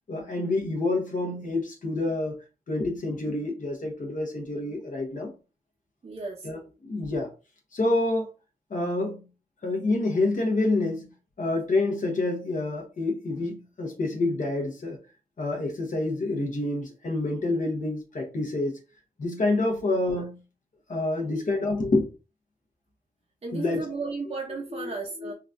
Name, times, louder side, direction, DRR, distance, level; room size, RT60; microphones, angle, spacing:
voice 1, 0.1-2.4 2.7-5.3 6.4-7.3 7.7-8.3 8.7-9.3 9.6-11.1 11.4-15.0 15.4-18.7 19.2-20.4 20.9-22.1 23.5-23.8 24.8-24.9 25.2-25.3, left 2 dB, 60° left, 0.8 m, -27 dB
voice 2, 6.0-6.5 20.2-20.3 21.2-21.5 23.4-25.3, right 4 dB, 45° right, 0.6 m, -35 dB
3.8 x 2.3 x 2.5 m
cardioid pair, 60°, 15 cm